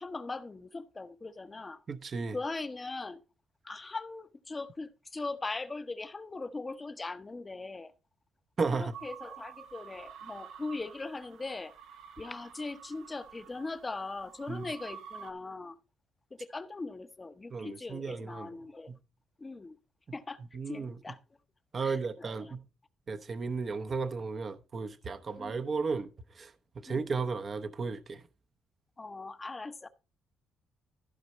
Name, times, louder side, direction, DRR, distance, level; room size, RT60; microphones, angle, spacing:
voice 1, 0.0-1.8 2.3-3.2 3.6-7.9 8.7-11.7 12.2-15.8 16.4-18.9 19.4-19.8 20.1-21.2 21.8-22.6 25.4-25.6 26.8-27.1 29.0-29.9, left 3 dB, 25° left, 0.9 m, -40 dB
voice 2, 1.9-2.4 8.6-8.9 14.5-14.7 17.5-18.6 18.9-19.0 20.5-21.0 21.7-22.6 23.1-26.1 26.4-26.5 26.8-28.2, right 4 dB, 40° right, 0.9 m, -34 dB
sound 1, 8.9-15.3, right 8 dB, 80° right, 1.1 m, -49 dB
14.5 x 5.2 x 4.3 m
cardioid pair, 90°, 0 cm